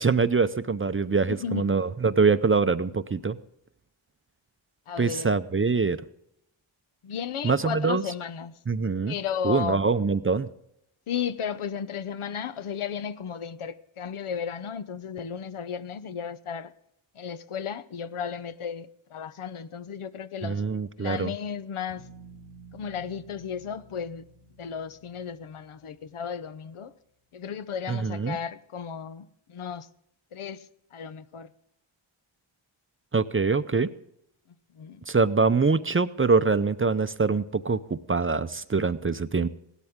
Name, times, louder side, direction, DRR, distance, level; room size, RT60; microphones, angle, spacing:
voice 1, 0.0-3.4 5.0-6.0 7.4-8.0 8.7-9.2 9.4-10.5 20.4-21.3 27.9-28.4 33.1-33.9 35.1-39.5, right 4 dB, 25° right, 0.5 m, -24 dB
voice 2, 1.3-1.7 4.9-5.4 7.0-8.6 9.1-9.9 11.1-16.7 17.1-20.6 21.0-22.1 22.7-24.2 24.6-26.9 27.3-29.9 30.3-30.7 30.9-31.5 34.7-35.0, left 7 dB, 80° left, 0.8 m, -34 dB
sound 1, 21.9-26.8, right 3 dB, 35° left, 4.1 m, -52 dB
16.5 x 12.5 x 3.6 m
wide cardioid pair, 75°, 49 cm